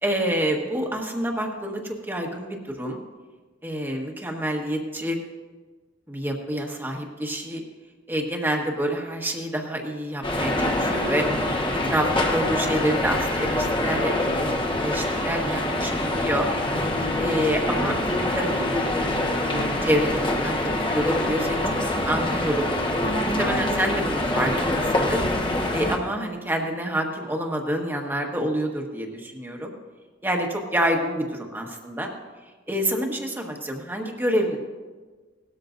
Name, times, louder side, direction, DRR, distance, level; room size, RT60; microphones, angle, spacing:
voice 1, 0.0-3.0 3.6-5.2 6.1-7.6 8.1-11.3 11.8-14.1 14.4-16.5 17.2-18.8 19.8-20.6 20.9-22.7 23.2-25.2 25.7-29.7 30.2-32.1 32.7-34.6, equal, 10° right, 1 dB, 1.5 m, -27 dB
sound 1, 10.2-26.0, left 1 dB, 25° left, 1.3 m, -25 dB
18.0 x 13.0 x 2.6 m, 1.3 s
head